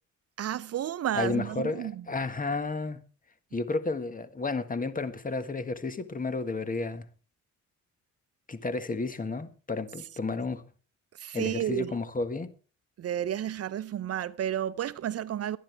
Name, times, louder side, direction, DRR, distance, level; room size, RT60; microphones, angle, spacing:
voice 1, 0.4-2.1 11.1-11.9 13.0-15.6, right 10 dB, 55° right, 0.6 m, -31 dB
voice 2, 1.1-3.0 3.5-7.0 8.5-10.6 11.3-12.5, left 3 dB, 30° left, 1.6 m, -32 dB
22.5 x 10.0 x 3.4 m
cardioid pair, 90°, 30 cm